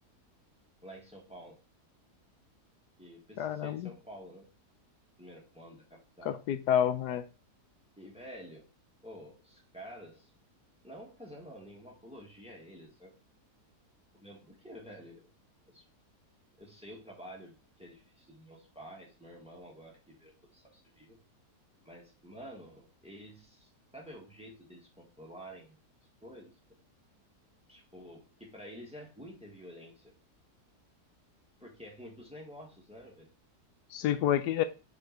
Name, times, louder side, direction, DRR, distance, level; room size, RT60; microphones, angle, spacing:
voice 1, 0.8-1.6 3.0-4.5 5.2-6.4 8.0-8.6 9.0-10.3 10.8-13.1 14.1-15.3 15.7-15.9 16.6-21.2 21.8-25.8 26.2-26.8 27.7-30.1 31.6-33.3 34.5-34.6, equal, 5° right, 1.6 m, -50 dB
voice 2, 3.4-3.9 6.2-7.2 33.9-34.6, left 10 dB, 80° left, 1.1 m, -29 dB
5.1 x 4.7 x 4.5 m
omnidirectional pair, 1.7 m